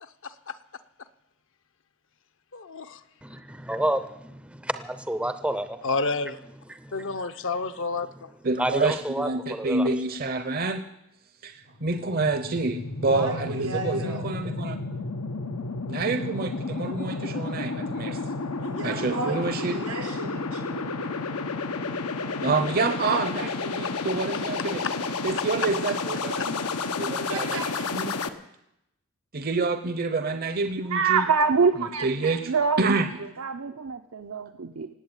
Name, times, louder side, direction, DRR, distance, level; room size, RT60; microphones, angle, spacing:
voice 1, 0.0-0.6 2.5-3.0 5.8-6.4 6.9-8.3 24.8-24.9, left 3 dB, 60° left, 11 dB, 0.8 m, -30 dB
voice 2, 3.2-5.8 8.6-9.9, right 1 dB, 5° right, 11 dB, 0.6 m, -29 dB
voice 3, 8.4-10.8 11.4-14.8 15.9-18.2 18.8-19.8 22.4-24.9 25.2-26.4 27.0-27.6 27.9-28.1 29.3-31.3 32.0-32.5 32.8-33.1, right 3 dB, 45° right, 9 dB, 0.8 m, -27 dB
sound 1, 11.7-28.3, left 3 dB, 90° left, 1.0 m, -31 dB
voice 4, 13.1-14.2 18.6-21.1 26.4-26.5 27.3-27.9, right 2 dB, 90° right, 2 dB, 5.1 m, -34 dB
voice 5, 30.9-32.8 33.2-34.9, right 5 dB, 70° right, 6 dB, 0.8 m, -25 dB
18.5 x 8.4 x 8.9 m, 0.85 s
head